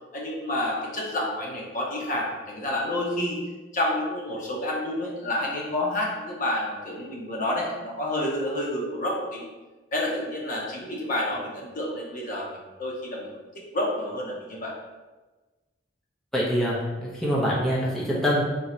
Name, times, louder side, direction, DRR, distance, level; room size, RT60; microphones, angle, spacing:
voice 1, 0.1-3.4 3.7-9.4 9.9-13.3 13.7-14.7, left 1 dB, 45° left, -3 dB, 0.9 m, -29 dB
voice 2, 16.3-18.4, equal, ahead, -6 dB, 0.8 m, -25 dB
3.7 x 2.8 x 4.3 m, 1.2 s
head